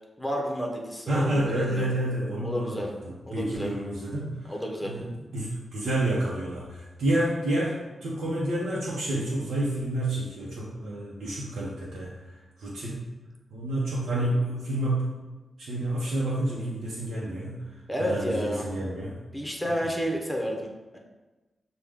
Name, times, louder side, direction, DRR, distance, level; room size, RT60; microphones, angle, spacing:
voice 1, 0.2-1.8 2.4-2.9 3.3-3.7 4.4-4.9 17.9-18.7 19.3-21.0, equal, 5° left, 0 dB, 0.8 m, -31 dB
voice 2, 1.1-4.5 4.8-13.1 13.5-15.1 15.6-17.6 18.0-19.2, right 1 dB, 85° right, -6 dB, 0.7 m, -29 dB
6.3 x 2.3 x 3.6 m, 1.1 s
cardioid pair, 80°, 0 cm